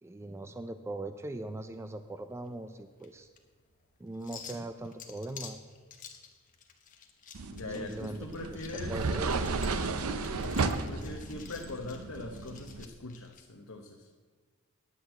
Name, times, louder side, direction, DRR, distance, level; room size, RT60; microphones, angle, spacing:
voice 1, 0.0-3.3 4.0-5.6 7.7-8.3 8.5-8.6 8.9-9.5 10.1-10.3, right 1 dB, 10° right, 9 dB, 0.3 m, -40 dB
sound 1, 1.2-13.4, left 7 dB, 40° left, 1.1 m, -52 dB
sound 2, 7.3-12.8, right 4 dB, 80° right, 0.6 m, -34 dB
voice 2, 7.5-9.0 10.4-14.1, left 2 dB, 80° left, 1 dB, 0.9 m, -42 dB
10.0 x 6.1 x 7.8 m, 1.5 s
head